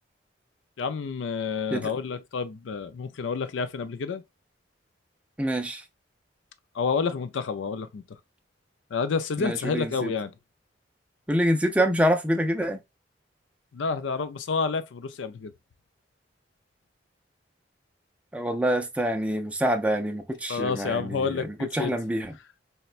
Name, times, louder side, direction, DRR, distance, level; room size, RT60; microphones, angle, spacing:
voice 1, 0.8-4.2 6.7-8.0 8.9-10.3 13.7-15.5 20.5-21.9, left 5 dB, 85° left, 0.4 m, -29 dB
voice 2, 5.4-5.8 9.4-10.1 11.3-12.8 18.3-22.3, equal, 5° right, 0.4 m, -26 dB
4.1 x 2.2 x 2.4 m
head